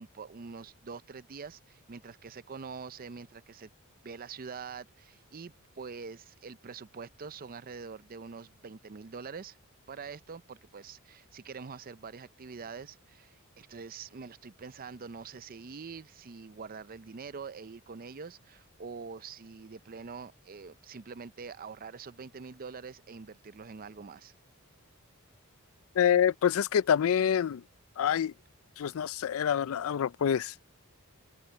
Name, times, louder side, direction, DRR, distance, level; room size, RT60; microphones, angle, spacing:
voice 1, 0.0-3.7 4.0-9.6 9.9-24.3, right 5 dB, 40° right, 0.5 m, -45 dB
voice 2, 26.0-27.6 28.0-28.3 28.8-30.5, left 8 dB, 65° left, 0.4 m, -26 dB
open air
head